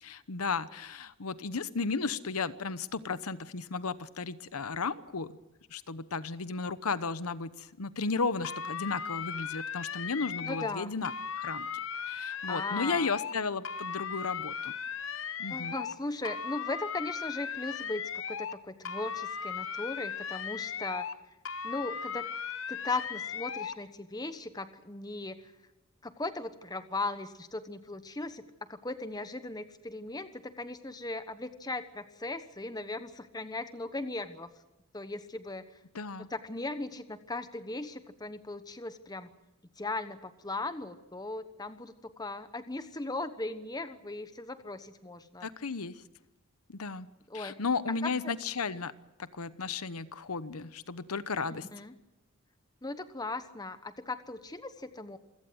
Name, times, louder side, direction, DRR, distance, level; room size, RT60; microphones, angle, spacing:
voice 1, 0.0-5.4 5.7-11.1 11.4-11.7 12.1-14.7 15.4-15.7 35.9-36.3 45.4-46.0 46.7-47.1 47.3-48.9 49.2-51.7, left 4 dB, 85° left, 14 dB, 1.0 m, -34 dB
sound 1, 8.4-10.8 11.0-13.4 13.6-16.0 16.2-18.6 18.8-21.2 21.5-23.8, left 7 dB, 65° left, 1.0 m, -37 dB
voice 2, 10.4-10.9 12.2-13.1 15.5-21.1 21.6-22.3 22.7-25.5 26.0-28.4 28.7-34.5 34.9-35.6 36.2-39.3 39.8-45.5 47.3-47.6 48.0-48.1 51.5-51.9 52.8-55.2, left 2 dB, 20° left, 10 dB, 1.1 m, -38 dB
27.0 x 17.0 x 7.9 m, 0.98 s
head